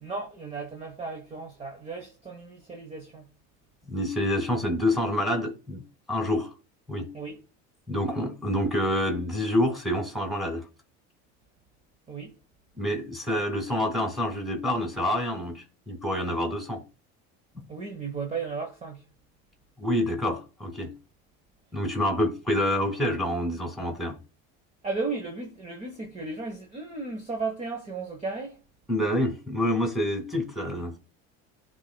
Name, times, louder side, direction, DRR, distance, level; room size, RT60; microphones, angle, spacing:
voice 1, 0.0-3.3 7.1-7.4 12.1-12.4 17.7-19.0 24.8-28.6, right 4 dB, 20° right, 1.0 m, -35 dB
voice 2, 3.9-5.8 6.1-6.5 6.9-7.1 7.9-10.7 12.8-16.8 19.8-20.9 21.7-24.2 28.9-31.0, left 1 dB, ahead, 2.2 m, -27 dB
11.5 x 4.0 x 2.2 m
cardioid pair, 125°, 30 cm